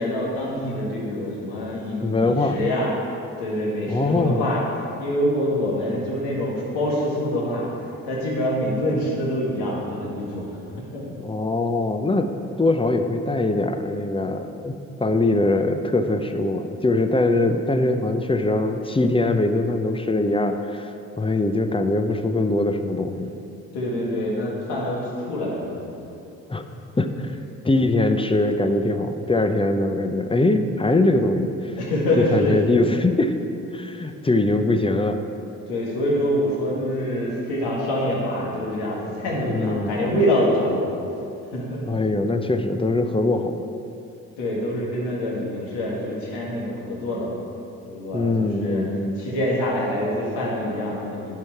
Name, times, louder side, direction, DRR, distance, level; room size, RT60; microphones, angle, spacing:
voice 1, 0.0-2.9 3.4-4.6 5.0-7.6 8.0-11.0 23.7-26.1 31.8-32.7 33.9-34.1 35.7-41.0 41.5-42.0 44.4-47.4 47.9-48.8 49.2-51.3, left 1 dB, 75° left, -4 dB, 2.0 m, -25 dB
voice 2, 2.0-2.6 3.9-4.4 11.2-12.3 12.6-14.7 15.0-20.9 21.2-23.4 26.5-26.6 27.0-27.3 27.6-31.7 32.2-33.3 33.7-35.2 39.5-39.9 41.9-43.7 48.1-49.2, left 2 dB, 15° left, 7 dB, 0.6 m, -22 dB
10.5 x 5.4 x 4.6 m, 2.7 s
hypercardioid pair, 45°, 41 cm